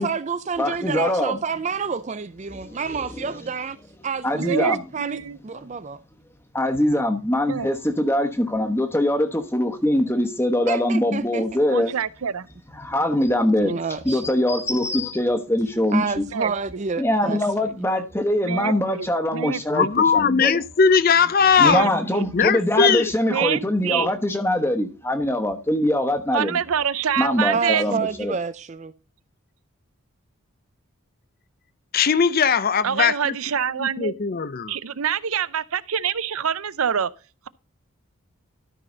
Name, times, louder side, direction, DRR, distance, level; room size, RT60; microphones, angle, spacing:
voice 1, 0.0-3.8 4.0-5.2 5.4-6.0 10.7-11.4 13.6-14.2 15.9-17.7 27.5-28.9, right 5 dB, 30° right, 0.4 m, -29 dB
voice 2, 0.6-1.4 2.6-2.7 3.2-3.3 4.2-4.8 6.5-11.9 12.8-13.7 14.0-16.2 17.0-19.9 20.1-20.6 21.6-26.6 27.2-28.3, left 1 dB, 10° left, 1.1 m, -22 dB
voice 3, 4.3-5.4 7.5-7.7 11.7-12.5 16.3-16.5 18.4-19.1 19.3-19.6 21.6-22.2 23.2-24.1 26.3-27.8 32.8-34.1 34.7-37.1, right 7 dB, 75° right, 0.6 m, -26 dB
voice 4, 19.7-21.9 22.3-23.1 31.9-33.3 33.8-34.7, left 6 dB, 40° left, 0.5 m, -19 dB
13.0 x 5.9 x 3.9 m
head